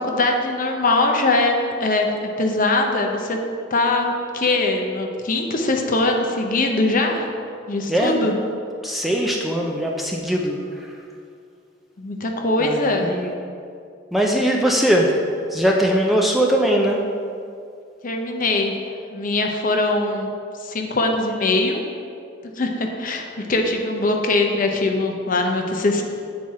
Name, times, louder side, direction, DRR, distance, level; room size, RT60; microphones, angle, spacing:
voice 1, 0.0-3.4 3.7-7.3 7.7-8.4 12.0-13.2 18.0-18.7 19.1-20.3 20.6-21.8 22.4-26.0, left 2 dB, 45° left, 3 dB, 0.7 m, -21 dB
voice 2, 8.8-10.6 12.6-13.3 14.1-15.1 15.5-17.0, equal, ahead, -1 dB, 0.4 m, -20 dB
7.8 x 4.2 x 4.7 m, 2.3 s
head